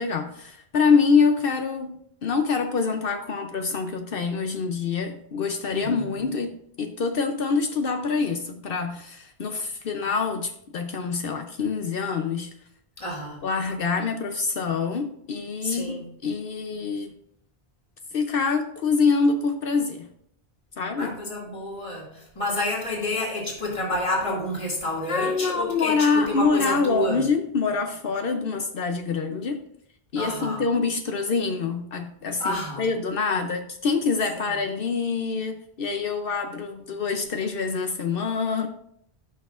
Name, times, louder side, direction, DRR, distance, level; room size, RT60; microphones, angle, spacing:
voice 1, 0.0-12.5 13.4-17.1 18.1-20.1 20.8-21.2 25.1-29.6 30.1-38.7, left 5 dB, 65° left, 6 dB, 0.8 m, -25 dB
voice 2, 13.0-13.4 15.6-16.0 21.0-25.9 26.3-27.2 30.2-30.6 32.4-32.9, left 1 dB, 30° left, -3 dB, 2.2 m, -29 dB
14.5 x 5.9 x 2.4 m, 0.71 s
omnidirectional pair, 1.0 m